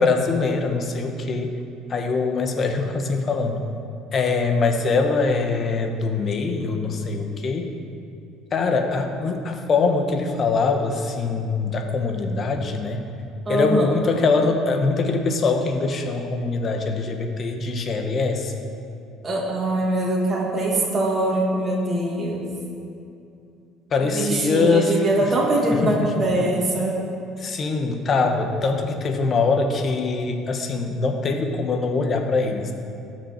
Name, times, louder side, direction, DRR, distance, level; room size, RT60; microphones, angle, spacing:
voice 1, 0.0-1.6 1.9-3.7 4.1-7.7 8.5-13.1 13.5-18.5 23.9-24.9 25.2-25.4 25.8-26.1 27.4-32.7, left 4 dB, 35° left, 4 dB, 1.2 m, -23 dB
voice 2, 13.5-13.9 19.2-22.5 24.1-27.0, right 1 dB, 25° right, -4 dB, 2.4 m, -22 dB
17.5 x 6.1 x 4.4 m, 2.5 s
cardioid pair, 120°, 0 cm